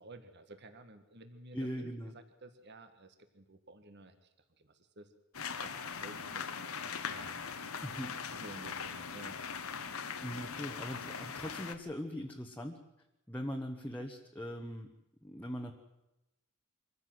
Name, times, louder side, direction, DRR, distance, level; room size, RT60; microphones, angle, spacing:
voice 1, 0.0-4.3 4.6-5.1 5.6-7.5 8.3-9.4, right 2 dB, 50° right, 8 dB, 1.7 m, -53 dB
voice 2, 1.5-2.2 7.8-8.2 10.2-12.8 13.3-14.9 15.2-15.7, equal, 10° left, 1 dB, 1.3 m, -40 dB
sound 1, 5.3-11.7, left 6 dB, 85° left, 1.5 m, -41 dB
24.5 x 15.5 x 7.8 m, 0.95 s
head